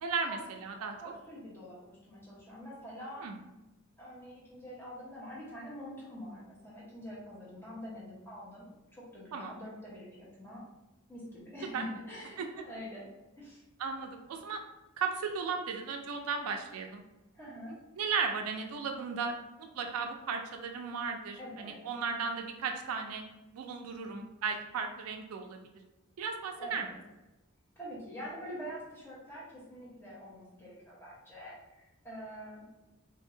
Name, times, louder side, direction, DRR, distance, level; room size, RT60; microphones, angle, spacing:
voice 1, 0.0-1.0 3.2-3.3 9.3-9.5 11.7-11.8 12.4-12.5 13.8-14.6 15.0-17.0 17.7-23.2 23.5-25.6 26.2-26.9, right 5 dB, 85° right, 4 dB, 0.4 m, -35 dB
voice 2, 1.0-3.3 4.0-10.6 11.1-13.1 13.4-13.6 17.3-17.8 21.4-21.8 23.8-24.2 26.6-27.0 27.8-32.6, equal, 10° left, -8 dB, 1.0 m, -45 dB
2.7 x 2.7 x 2.6 m, 1.0 s
head